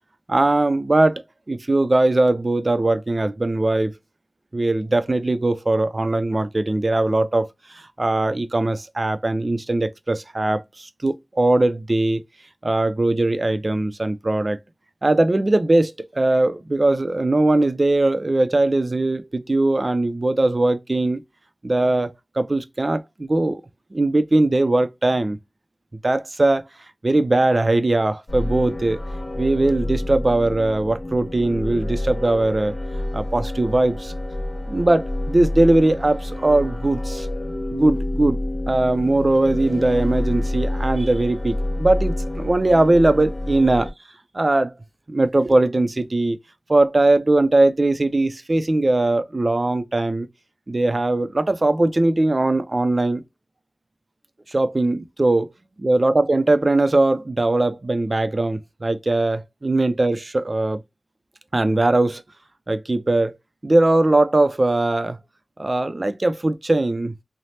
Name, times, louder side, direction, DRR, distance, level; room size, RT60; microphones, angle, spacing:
voice 1, 0.3-3.9 4.5-7.5 7.7-12.2 12.6-14.6 15.0-21.2 21.6-23.6 23.9-25.4 26.0-26.6 27.0-29.0 29.4-32.8 33.1-34.1 34.7-37.3 37.7-38.4 38.7-43.9 44.3-44.7 45.1-46.4 46.7-50.3 50.7-53.2 54.5-55.5 55.8-60.8 61.5-62.2 62.7-63.4 63.6-65.2 65.6-67.1, right 2 dB, 45° right, 0.4 m, -20 dB
sound 1, 28.3-43.9, left 1 dB, 35° left, 0.6 m, -28 dB
3.2 x 2.0 x 2.7 m
wide cardioid pair, 60°, 0 cm